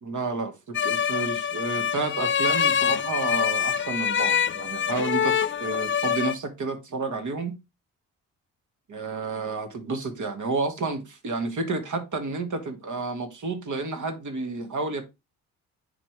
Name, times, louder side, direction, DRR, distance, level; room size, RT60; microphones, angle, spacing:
voice 1, 0.0-5.4 5.6-7.5 8.9-15.0, right 3 dB, 45° right, 1.9 m, -30 dB
sound 1, 0.7-6.3, left 8 dB, 30° left, 0.5 m, -25 dB
9.7 x 3.7 x 3.2 m
hypercardioid pair, 45°, 41 cm